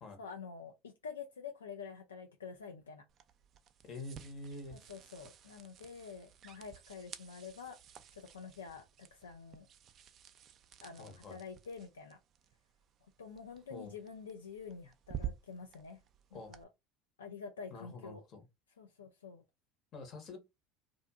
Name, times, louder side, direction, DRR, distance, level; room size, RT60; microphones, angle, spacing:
voice 1, 0.2-3.0 4.7-7.8 8.1-9.7 10.8-12.2 13.2-16.0 16.3-16.7 17.2-18.2 18.8-19.4, left 5 dB, 85° left, 0.3 m, -48 dB
sound 1, 3.1-16.6, right 10 dB, 45° right, 0.4 m, -51 dB
voice 2, 3.8-4.8 11.0-11.4 13.7-13.9 16.3-16.5 17.7-18.4 19.9-20.4, left 3 dB, 50° left, 1.0 m, -47 dB
2.5 x 2.4 x 2.4 m
hypercardioid pair, 75°, 0 cm